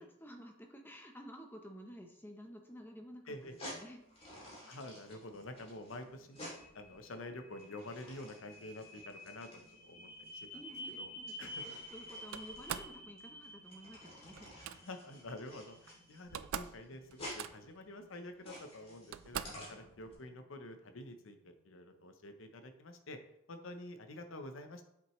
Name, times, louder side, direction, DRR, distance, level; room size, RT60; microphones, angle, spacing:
voice 1, 0.0-4.0 10.5-14.5, equal, 10° left, 4 dB, 0.8 m, -52 dB
sound 1, 3.4-20.1, equal, 30° left, 2.8 m, -52 dB
sound 2, 3.9-22.0, equal, 45° left, 2.7 m, -53 dB
voice 2, 4.7-10.6 11.0-11.1 11.4-11.6 14.8-23.2 23.5-24.8, left 1 dB, 70° left, 7 dB, 0.8 m, -48 dB
Slam, 12.3-13.0 14.4-14.8 15.9-16.0 16.2-16.8 17.1-17.8 18.6-18.7 19.1-19.7, right 9 dB, 75° right, 0.4 m, -43 dB
7.7 x 6.0 x 3.1 m, 0.78 s
head